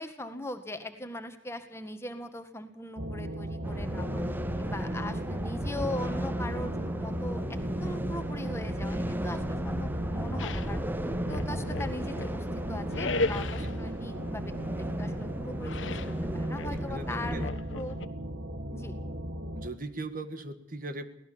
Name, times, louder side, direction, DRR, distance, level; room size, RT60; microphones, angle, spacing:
voice 1, 0.0-4.2 4.6-16.0 16.3-18.0 18.7-18.9, left 1 dB, 15° left, 7 dB, 1.9 m, -40 dB
sound 1, 3.0-19.7, right 1 dB, 75° right, 2.4 m, -37 dB
sound 2, 3.6-17.5, equal, 10° right, 0.7 m, -35 dB
sound 3, 10.4-10.7 11.2-12.4 12.9-13.8 15.6-16.2 16.5-18.1, left 2 dB, 80° left, 1.3 m, -35 dB
voice 2, 16.7-17.5 19.5-21.1, right 2 dB, 45° right, 9 dB, 1.8 m, -39 dB
23.5 x 18.5 x 7.1 m, 0.80 s
head